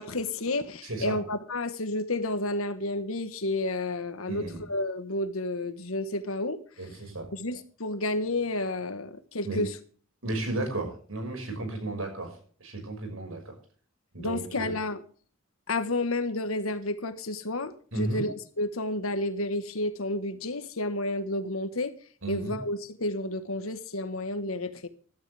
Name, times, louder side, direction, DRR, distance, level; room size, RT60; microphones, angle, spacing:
voice 1, 0.0-4.4 4.7-6.6 7.3-9.8 14.2-15.0 15.7-21.9 22.3-24.9, left 2 dB, 85° left, 1.5 m, -31 dB
voice 2, 0.8-1.2 4.3-4.6 6.8-7.3 9.4-9.6 10.2-13.5 14.1-14.7 17.9-18.3 22.2-22.6, right 2 dB, 75° right, 5.9 m, -34 dB
16.5 x 12.5 x 3.5 m
head